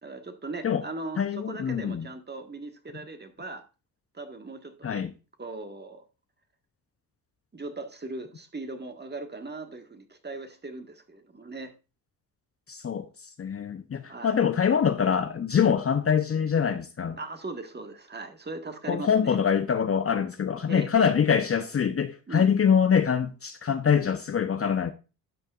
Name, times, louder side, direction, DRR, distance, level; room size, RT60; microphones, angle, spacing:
voice 1, 0.0-3.6 4.1-5.0 5.4-6.0 7.5-11.7 14.1-14.3 17.2-19.4 20.7-21.1 22.3-22.5, right 3 dB, 25° right, 1.7 m, -39 dB
voice 2, 1.2-2.1 4.8-5.1 12.7-13.1 13.4-17.2 18.9-24.9, left 7 dB, 35° left, 0.8 m, -24 dB
12.0 x 6.2 x 2.5 m
supercardioid pair, 60°, 41 cm